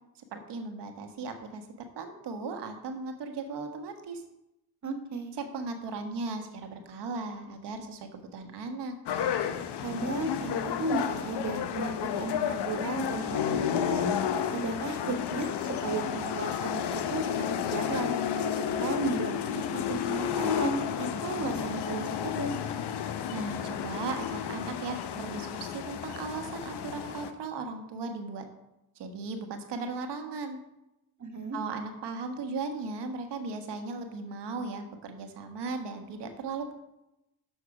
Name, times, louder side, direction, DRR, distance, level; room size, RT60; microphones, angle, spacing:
voice 1, 0.1-1.7 1.9-4.2 5.5-8.9 23.3-28.4 28.9-30.6 31.5-36.7, right 3 dB, 80° right, 6 dB, 1.3 m, -37 dB
voice 2, 4.8-5.3 9.8-14.1 14.5-15.5 15.8-18.2 18.5-22.5 31.2-31.6, right 2 dB, 45° right, 6 dB, 1.4 m, -34 dB
sound 1, 9.1-27.3, left 8 dB, 75° left, 0.8 m, -32 dB
6.7 x 6.4 x 4.9 m, 0.91 s
supercardioid pair, 60°, 41 cm